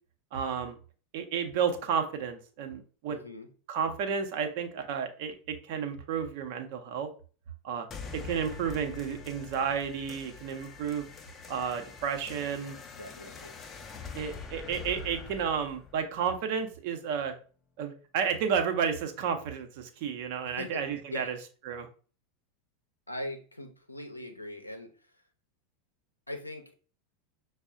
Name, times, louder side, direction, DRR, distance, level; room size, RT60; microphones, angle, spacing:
voice 1, 0.3-0.8 1.1-3.2 3.7-7.1 7.6-7.9 8.1-11.1 11.5-12.8 14.1-17.3 17.8-21.4 21.6-21.9, right 7 dB, 50° right, 6 dB, 0.6 m, -32 dB
voice 2, 3.1-3.5 13.0-13.5 20.4-20.8 21.1-21.3 23.1-24.9 26.3-26.6, left 1 dB, 85° left, 4 dB, 0.6 m, -40 dB
sound 1, 7.9-16.9, left 5 dB, 25° left, 0.5 m, -45 dB
6.0 x 2.0 x 2.5 m, 0.39 s
figure-of-eight pair, 85°, 0 cm